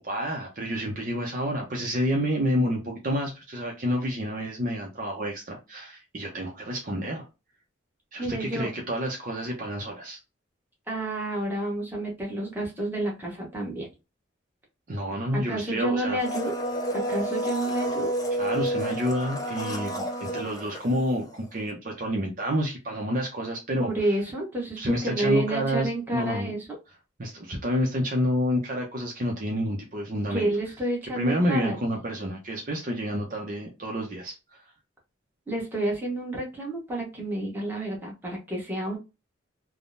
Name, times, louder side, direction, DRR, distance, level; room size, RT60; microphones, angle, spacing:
voice 1, 0.0-7.2 8.1-10.2 14.9-16.2 18.4-20.0 20.3-23.9 24.8-26.5 27.2-30.5 31.1-34.3, equal, 45° right, 0 dB, 0.6 m, -29 dB
voice 2, 8.2-8.7 10.9-13.9 15.3-16.5 16.9-18.1 23.8-26.6 30.3-31.8 35.5-39.0, right 1 dB, 10° right, -2 dB, 1.1 m, -29 dB
Domestic sounds home sounds, 16.2-21.5 21.7-21.8, right 1 dB, 20° left, 0.5 m, -30 dB
3.5 x 2.1 x 2.5 m, 0.27 s
head